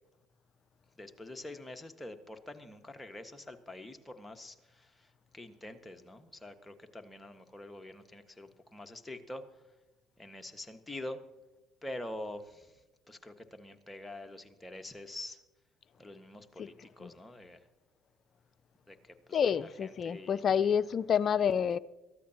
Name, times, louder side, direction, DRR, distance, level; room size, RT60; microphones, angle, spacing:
voice 1, 1.0-9.4 10.2-11.2 11.8-12.8 13.1-15.4 16.0-17.6 18.9-19.5 19.8-20.7, left 1 dB, 15° left, 1.6 m, -46 dB
voice 2, 19.3-21.8, left 7 dB, 50° left, 0.5 m, -28 dB
22.5 x 15.0 x 2.9 m
hypercardioid pair, 60°, 0 cm